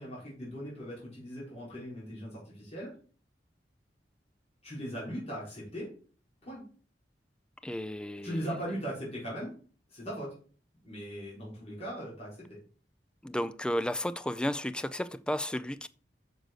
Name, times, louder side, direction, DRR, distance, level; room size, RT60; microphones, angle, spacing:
voice 1, 0.0-2.9 4.6-5.9 6.4-6.6 8.2-9.6 9.9-10.3 10.8-12.5, equal, 35° left, 4.1 m, -39 dB
voice 2, 7.6-8.5 13.2-15.9, equal, 5° left, 0.3 m, -33 dB
6.5 x 6.2 x 5.1 m
head